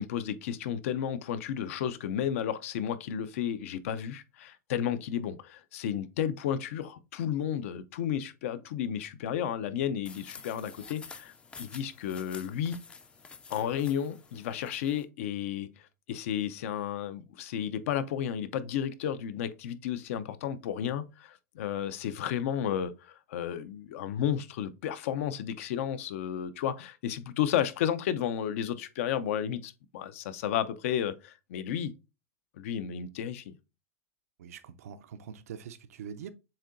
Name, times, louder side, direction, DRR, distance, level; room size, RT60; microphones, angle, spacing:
voice 1, 0.0-12.8 13.5-31.9 32.6-33.6, left 9 dB, 65° left, 0.5 m, -32 dB
sound 1, 10.0-15.0, left 5 dB, 15° left, 0.4 m, -49 dB
voice 2, 34.4-36.3, right 7 dB, 80° right, 0.6 m, -44 dB
7.3 x 2.8 x 2.5 m
supercardioid pair, 145°, 8 cm